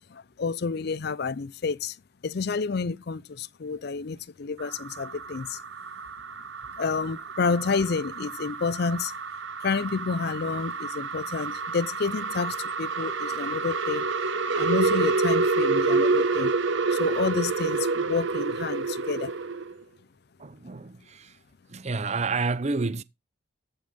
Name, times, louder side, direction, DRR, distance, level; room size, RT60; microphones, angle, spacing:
voice 1, 0.1-2.0 2.2-5.6 6.8-9.1 9.6-14.1 14.6-16.5 16.9-19.3, left 4 dB, 50° left, 0.5 m, -29 dB
sound 1, 4.6-19.7, right 3 dB, 65° right, 1.0 m, -28 dB
voice 2, 20.4-21.3 21.7-23.0, right 4 dB, 35° right, 0.6 m, -29 dB
14.0 x 5.3 x 5.2 m
head